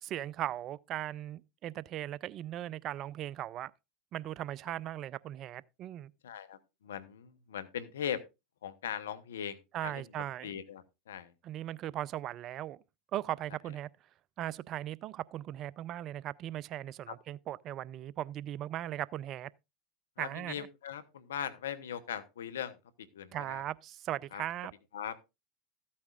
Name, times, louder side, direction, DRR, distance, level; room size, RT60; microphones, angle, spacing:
voice 1, 0.0-3.7 4.1-6.1 9.7-10.6 11.4-12.8 13.1-13.9 14.4-19.5 20.2-20.7 23.3-24.7, right 12 dB, 45° right, 0.4 m, -38 dB
voice 2, 6.2-6.6 6.8-8.2 8.6-10.0 10.4-11.3 17.1-17.2 20.2-23.6 24.3-24.4 24.9-25.2, left 9 dB, 85° left, 0.9 m, -40 dB
14.0 x 8.5 x 2.4 m
hypercardioid pair, 90°, 0 cm